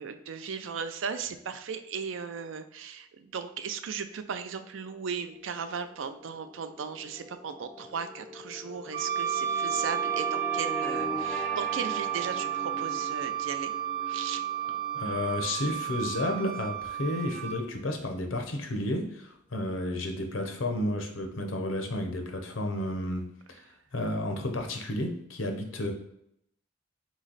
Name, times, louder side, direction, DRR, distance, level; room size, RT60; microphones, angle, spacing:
voice 1, 0.0-13.7 14.0-14.5, right 6 dB, 80° right, 10 dB, 0.4 m, -37 dB
sound 1, 5.2-17.8, left 1 dB, 5° left, 0.4 m, -41 dB
Wind instrument woodwind instrument, 8.9-17.6, right 10 dB, 55° right, 0.9 m, -32 dB
voice 2, 14.9-25.9, left 1 dB, 85° left, 4 dB, 0.8 m, -32 dB
4.0 x 3.1 x 3.9 m, 0.75 s
head